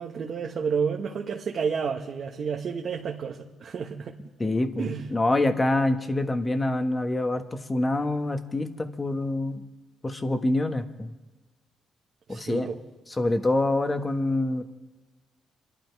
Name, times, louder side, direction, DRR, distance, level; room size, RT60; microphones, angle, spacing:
voice 1, 0.0-4.2 4.8-5.1 12.3-12.8, right 6 dB, 55° right, 1 dB, 1.1 m, -30 dB
voice 2, 4.4-9.6 10.0-11.1 12.3-12.7 13.1-14.7, left 2 dB, 20° left, 7 dB, 1.4 m, -26 dB
26.5 x 11.5 x 4.7 m, 1.2 s
cardioid pair, 90°, 0 cm